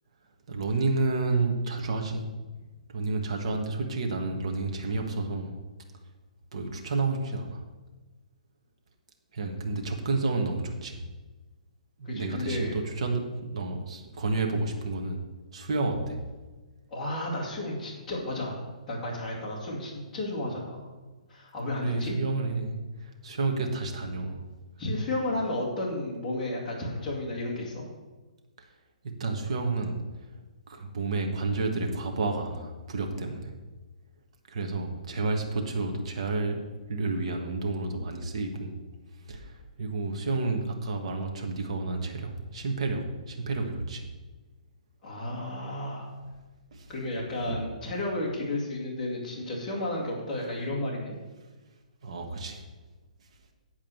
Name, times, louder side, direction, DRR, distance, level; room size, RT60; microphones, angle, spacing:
voice 1, 0.5-2.2 2.9-5.5 6.5-7.6 9.3-11.0 12.0-13.2 13.5-15.2 15.5-16.2 21.8-22.7 23.0-24.4 29.0-30.0 30.7-33.5 34.5-36.6 36.9-38.7 39.3-44.1 46.7-46.9 47.5-47.6 52.0-52.6, right 3 dB, 50° right, 3 dB, 1.5 m, -30 dB
voice 2, 12.0-12.8 16.9-20.9 21.3-22.1 24.8-27.8 45.0-46.1 46.9-51.2, left 1 dB, 15° left, -6 dB, 2.0 m, -32 dB
9.0 x 4.8 x 7.7 m, 1.2 s
hypercardioid pair, 170°, 4 cm